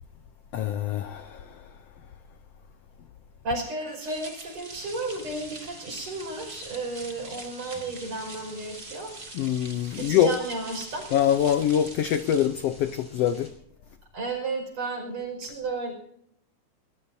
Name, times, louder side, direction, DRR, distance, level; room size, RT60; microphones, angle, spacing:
voice 1, 0.5-1.6 9.3-10.4 11.1-13.5, left 10 dB, 80° left, 10 dB, 1.4 m, -24 dB
voice 2, 3.4-9.1 9.9-11.1 14.1-15.9, right 3 dB, 55° right, 1 dB, 6.3 m, -33 dB
sound 1, 4.0-12.5, right 2 dB, 20° right, 1.6 m, -44 dB
sound 2, 4.7-13.5, equal, 5° left, 5.4 m, -50 dB
22.5 x 20.0 x 2.7 m, 0.69 s
omnidirectional pair, 3.6 m